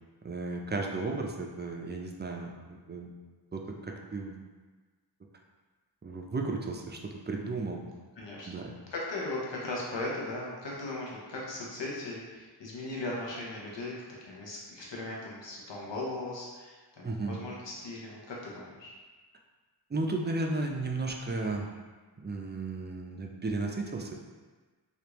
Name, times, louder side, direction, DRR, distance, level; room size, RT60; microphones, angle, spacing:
voice 1, 0.2-3.1 3.5-4.4 6.0-7.8 8.5-8.7 17.0-17.4 19.9-21.7 22.2-24.1, right 3 dB, 25° right, 1 dB, 0.3 m, -34 dB
voice 2, 8.2-8.5 8.9-13.9 14.3-18.9, left 2 dB, 85° left, -4 dB, 0.8 m, -38 dB
3.3 x 2.5 x 2.9 m, 1.3 s
wide cardioid pair, 55°, 43 cm